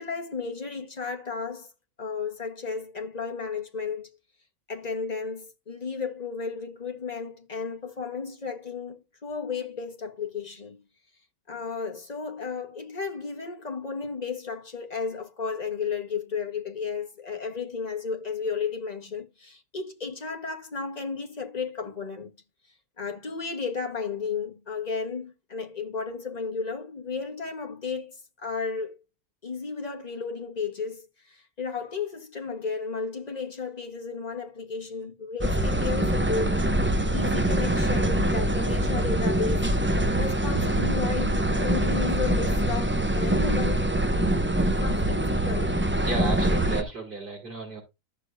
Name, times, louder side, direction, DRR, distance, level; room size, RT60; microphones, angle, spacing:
voice 1, 0.0-1.7 2.0-4.1 4.7-10.8 11.5-22.3 23.0-28.9 29.4-39.7 40.2-43.9 44.8-45.8, left 5 dB, 30° left, 1.4 m, -33 dB
sound 1, 35.4-46.8, right 1 dB, 15° right, 0.5 m, -24 dB
voice 2, 46.0-47.8, right 2 dB, 40° right, 4.2 m, -32 dB
14.0 x 6.6 x 2.6 m
omnidirectional pair, 1.4 m